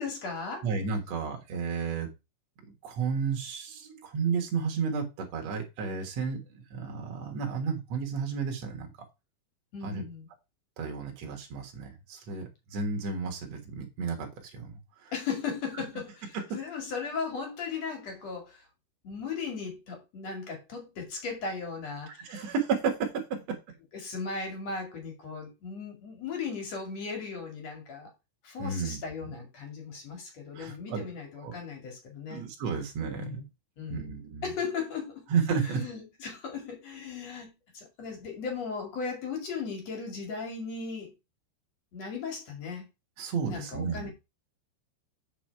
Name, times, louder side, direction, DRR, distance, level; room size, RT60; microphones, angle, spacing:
voice 1, 0.0-0.7 9.7-10.3 15.1-18.7 19.0-22.5 23.9-28.1 28.4-32.4 33.1-33.4 33.8-34.1 34.4-35.2 35.6-41.1 41.9-42.9 43.5-44.1, left 5 dB, 45° left, 2.7 m, -37 dB
voice 2, 0.6-2.1 2.8-8.9 9.8-10.0 10.8-14.7 15.0-15.1 16.3-16.4 22.2-23.6 28.6-29.0 30.5-31.0 31.4-31.5 32.3-33.4 33.9-34.5 35.3-35.8 43.2-44.1, right 5 dB, 75° right, 1.6 m, -32 dB
8.4 x 6.1 x 4.7 m
omnidirectional pair, 5.6 m